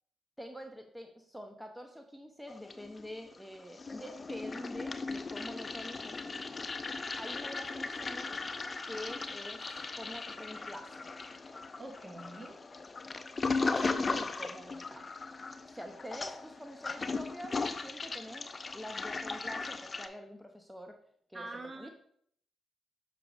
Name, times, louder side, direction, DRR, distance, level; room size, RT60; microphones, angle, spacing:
voice 1, 0.4-6.4 7.2-8.3 8.9-9.6 9.9-11.0 13.6-15.0 15.7-20.9 21.3-21.9, equal, ahead, 4 dB, 0.7 m, -46 dB
Toilet flush, 2.5-3.3 3.6-20.1, left 3 dB, 40° left, 0.5 m, -37 dB
voice 2, 11.8-12.6 21.3-21.9, right 2 dB, 30° right, 5 dB, 1.1 m, -44 dB
6.7 x 6.0 x 2.5 m, 0.63 s
supercardioid pair, 50°, 0 cm